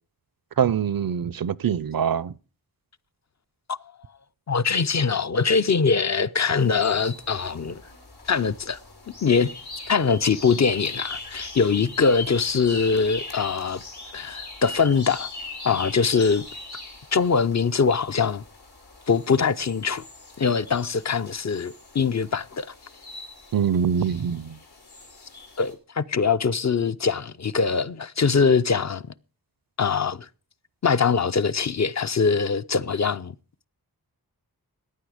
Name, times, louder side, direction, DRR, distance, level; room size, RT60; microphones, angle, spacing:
voice 1, 0.6-2.3 23.5-24.6, right 8 dB, 65° right, 0.5 m, -24 dB
voice 2, 4.5-7.8 8.3-8.8 9.2-9.5 9.9-13.8 14.1-15.3 15.6-16.5 17.1-18.4 19.1-20.0 20.4-22.7 25.6-29.0 29.8-30.3 30.8-33.3, left 5 dB, 45° left, 0.5 m, -22 dB
sound 1, 6.6-25.7, left 3 dB, 85° left, 3.5 m, -40 dB
15.0 x 9.8 x 4.9 m
wide cardioid pair, 70°, 38 cm